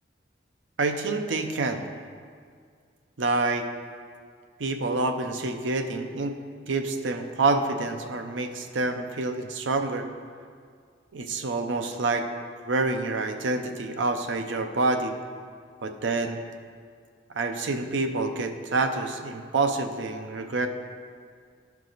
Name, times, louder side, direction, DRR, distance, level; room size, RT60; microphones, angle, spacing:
voice 1, 0.8-1.9 3.2-3.7 4.6-6.3 6.7-10.1 11.1-12.3 12.7-15.2 15.8-16.4 17.3-20.7, right 3 dB, 85° right, 6 dB, 0.6 m, -27 dB
11.0 x 4.7 x 4.0 m, 2.1 s
head